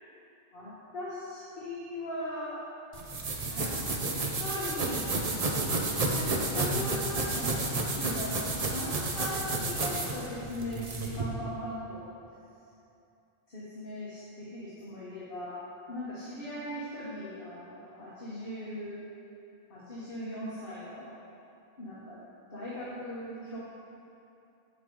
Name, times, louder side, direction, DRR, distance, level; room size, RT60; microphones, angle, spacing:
voice 1, 0.5-2.6 3.4-3.7 4.4-5.1 6.1-8.4 8.6-12.1 13.5-15.6 15.9-19.0 19.7-21.1 21.8-22.2 22.5-23.6, left 1 dB, 65° left, -9 dB, 1.5 m, -39 dB
sound 1, 2.9-11.2, right 2 dB, 40° right, 0.8 m, -31 dB
7.8 x 7.6 x 3.8 m, 2.7 s
omnidirectional pair, 1.0 m